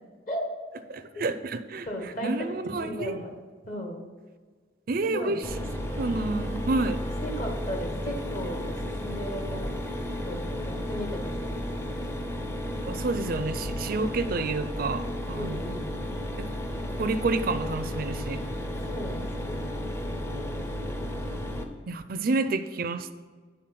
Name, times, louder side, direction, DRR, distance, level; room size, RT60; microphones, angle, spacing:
voice 1, 0.9-1.9 2.2-3.2 4.9-5.4 6.0-7.0 12.6-15.6 16.4-16.5 17.0-18.4 21.9-23.1, right 3 dB, 50° right, 11 dB, 0.4 m, -29 dB
voice 2, 1.9-2.3 2.8-3.3 3.7-4.0 5.1-5.4 7.2-9.7 10.2-11.6 12.0-12.1 15.3-15.9 18.9-19.7 20.3-21.1, equal, 45° left, 2 dB, 1.3 m, -36 dB
Mechanisms, 5.4-21.6, equal, 15° left, 0.6 m, -33 dB
9.2 x 4.0 x 5.9 m, 1.5 s
head